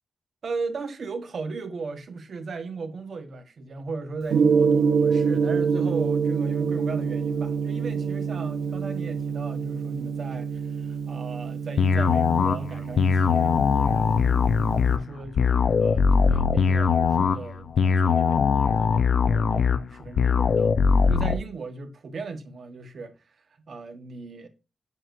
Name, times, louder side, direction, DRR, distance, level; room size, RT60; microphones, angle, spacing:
voice 1, 0.4-20.8 21.1-23.1 23.7-24.5, right 4 dB, 60° right, 1.2 m, -37 dB
Gong, 4.3-15.0, right 6 dB, 80° right, 0.6 m, -26 dB
sound 1, 11.8-21.4, left 5 dB, 75° left, 0.6 m, -21 dB
7.6 x 6.1 x 2.5 m
wide cardioid pair, 105°, 0 cm